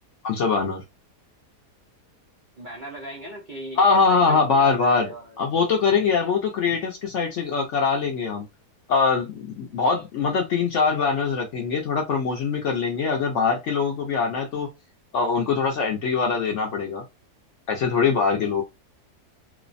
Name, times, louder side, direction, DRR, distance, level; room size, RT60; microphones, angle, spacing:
voice 1, 0.2-0.8 3.8-5.1 5.4-8.5 8.9-14.7 15.1-17.0 17.7-18.6, left 5 dB, 65° left, 0.7 m, -22 dB
voice 2, 2.6-5.4, right 2 dB, 65° right, 0.4 m, -38 dB
3.1 x 2.0 x 2.4 m
omnidirectional pair, 1.7 m